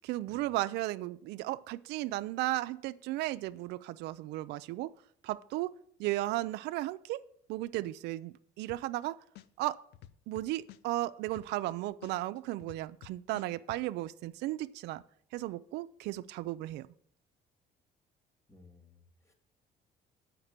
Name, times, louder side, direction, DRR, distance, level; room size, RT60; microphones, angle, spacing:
voice 1, 0.0-4.9 5.2-5.7 6.0-7.2 7.5-9.2 9.6-9.8 10.3-15.0 15.3-16.9, right 17 dB, 85° right, 14 dB, 0.4 m, -35 dB
sound 1, 8.7-9.0 9.3-11.7 12.0-13.8, left 12 dB, 80° left, 0.5 m, -51 dB
voice 2, 18.5-19.3, left 3 dB, 15° left, 6 dB, 1.8 m, -59 dB
7.9 x 5.1 x 7.3 m, 0.63 s
cardioid pair, 110°, 17 cm